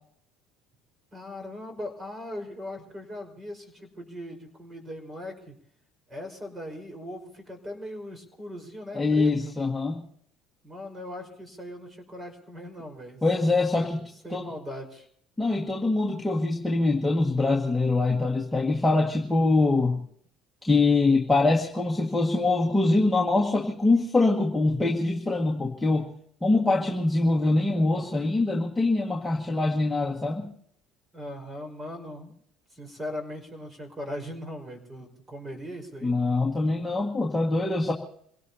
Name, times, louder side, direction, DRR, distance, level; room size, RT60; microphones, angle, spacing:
voice 1, 1.1-5.5 6.1-9.5 10.6-13.2 13.7-14.0 14.2-15.1 31.1-32.4 32.7-36.1, left 1 dB, 25° right, 5 dB, 5.0 m, -39 dB
voice 2, 8.9-10.0 13.2-14.0 14.3-14.5 15.4-20.0 20.6-26.1 26.4-30.5 36.0-37.9, left 3 dB, 5° left, -2 dB, 1.9 m, -24 dB
27.5 x 17.5 x 2.9 m, 0.66 s
hypercardioid pair, 80°, 0 cm